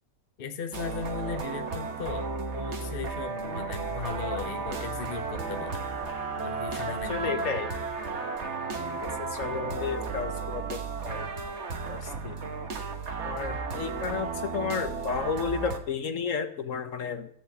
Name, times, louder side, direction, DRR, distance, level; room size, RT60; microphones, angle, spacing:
voice 1, 0.4-5.8 6.4-7.5 13.5-13.6, left 6 dB, 45° left, 6 dB, 0.9 m, -37 dB
sound 1, 0.7-15.8, right 4 dB, 50° right, 1.4 m, -34 dB
Bowed string instrument, 6.1-10.9, right 4 dB, 15° left, 2.8 m, -46 dB
voice 2, 6.9-7.7 9.0-11.3 11.9-12.4 13.2-17.3, left 6 dB, 60° left, 8 dB, 1.3 m, -32 dB
13.5 x 5.8 x 7.7 m, 0.63 s
omnidirectional pair, 1.5 m